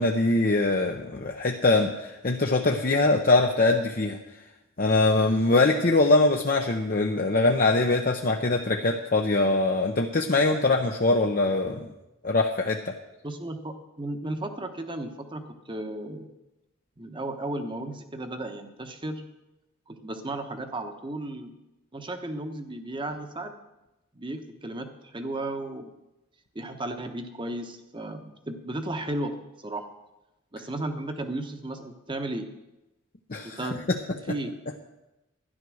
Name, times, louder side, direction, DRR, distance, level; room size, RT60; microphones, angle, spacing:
voice 1, 0.0-4.2 4.8-11.8 12.2-12.9 33.3-33.7, left 2 dB, 45° left, 2 dB, 0.8 m, -23 dB
voice 2, 13.2-16.3 17.0-19.2 19.9-21.5 21.9-23.5 24.1-25.9 26.5-29.3 29.6-29.8 30.5-32.5 33.4-33.9 34.3-34.6, right 1 dB, 25° right, 7 dB, 1.1 m, -34 dB
12.5 x 10.5 x 6.3 m, 0.97 s
head